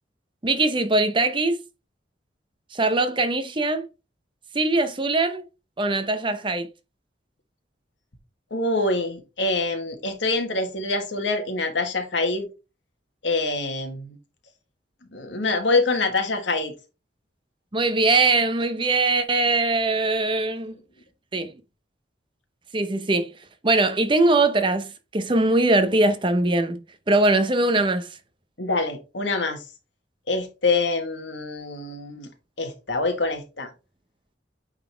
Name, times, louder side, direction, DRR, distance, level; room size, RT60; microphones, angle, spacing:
voice 1, 0.4-1.6 2.7-3.9 4.5-5.4 5.8-6.7 17.7-20.8 21.3-21.5 22.7-23.3 23.6-28.1, right 2 dB, 25° right, 0.7 m, -21 dB
voice 2, 8.5-12.5 13.2-14.2 15.1-16.7 28.6-29.6 30.3-32.3 32.6-33.7, left 3 dB, 85° left, 1.6 m, -25 dB
8.8 x 4.0 x 3.4 m
head